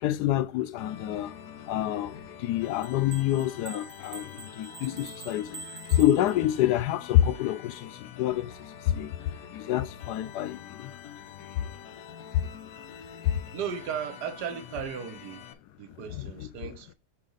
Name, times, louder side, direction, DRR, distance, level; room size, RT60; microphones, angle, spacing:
voice 1, 0.0-1.4 1.7-9.2 9.5-10.9 11.5-11.7 12.3-12.5 12.9-13.5 16.1-16.5, left 12 dB, 85° left, 1.2 m, -27 dB
sound 1, 0.8-15.5, left 9 dB, 70° left, 1.2 m, -46 dB
sound 2, 2.8-6.8, right 5 dB, 55° right, 1.5 m, -46 dB
voice 2, 13.5-15.4 15.8-16.9, right 7 dB, 80° right, 1.4 m, -36 dB
6.4 x 4.2 x 3.9 m
omnidirectional pair, 1.7 m